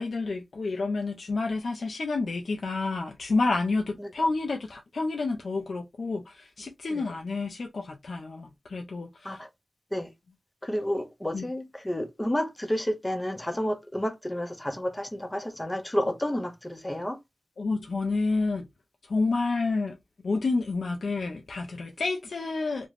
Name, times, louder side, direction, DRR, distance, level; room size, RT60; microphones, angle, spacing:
voice 1, 0.0-9.4 11.3-11.4 17.6-18.7 19.1-20.0 20.2-22.9, left 3 dB, 80° left, 0.4 m, -29 dB
voice 2, 10.6-17.2, equal, 20° left, 0.6 m, -30 dB
2.4 x 2.1 x 3.2 m
wide cardioid pair, 65°, 0 cm